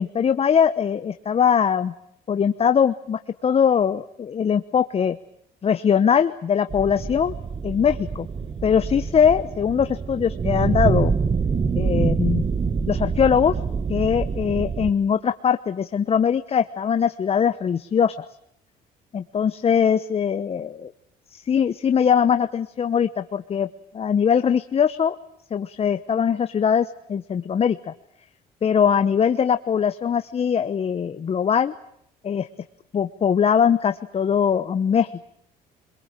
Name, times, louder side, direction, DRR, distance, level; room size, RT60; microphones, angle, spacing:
voice 1, 0.0-1.9 2.3-5.2 5.6-7.3 7.6-8.3 8.6-11.1 11.8-12.4 12.9-13.6 13.9-18.1 19.1-20.9 21.3-23.7 23.9-25.2 25.5-27.9 28.6-31.7 32.2-32.5 32.9-35.2, left 7 dB, 35° left, 10 dB, 1.1 m, -21 dB
sound 1, 6.7-14.9, right 5 dB, 30° right, 1.3 m, -25 dB
26.5 x 22.5 x 9.0 m, 0.70 s
cardioid pair, 110°, 17 cm